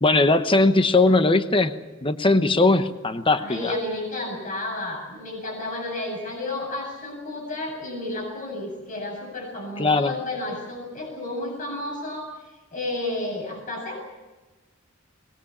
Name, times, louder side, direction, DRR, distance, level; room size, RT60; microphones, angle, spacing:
voice 1, 0.0-1.7 2.0-3.7 9.8-10.1, left 2 dB, 25° left, 10 dB, 1.0 m, -19 dB
voice 2, 3.3-12.3 12.7-14.0, left 2 dB, 40° left, 0 dB, 7.9 m, -31 dB
23.0 x 21.0 x 7.3 m, 1.2 s
head